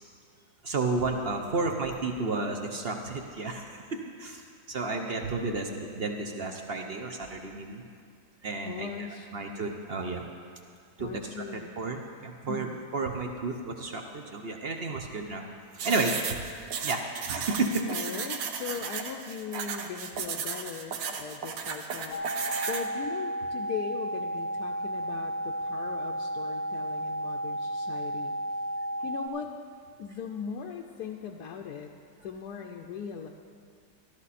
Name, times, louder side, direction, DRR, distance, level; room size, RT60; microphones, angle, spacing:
voice 1, 0.6-4.4 4.7-7.8 8.4-9.1 9.3-10.3 11.0-11.1 11.5-15.4 15.7-16.4 16.8-17.9, right 3 dB, 55° right, 3 dB, 0.7 m, -32 dB
voice 2, 8.6-9.6 11.0-11.8 12.5-12.7 17.9-28.6 29.0-29.5 30.0-31.9 32.2-33.3, left 7 dB, 70° left, 2 dB, 1.1 m, -39 dB
sound 1, 15.8-22.9, right 6 dB, 75° right, 1.5 m, -35 dB
sound 2, 22.1-29.3, right 1 dB, 35° left, 0.7 m, -33 dB
14.0 x 12.5 x 4.2 m, 2.2 s
omnidirectional pair, 2.0 m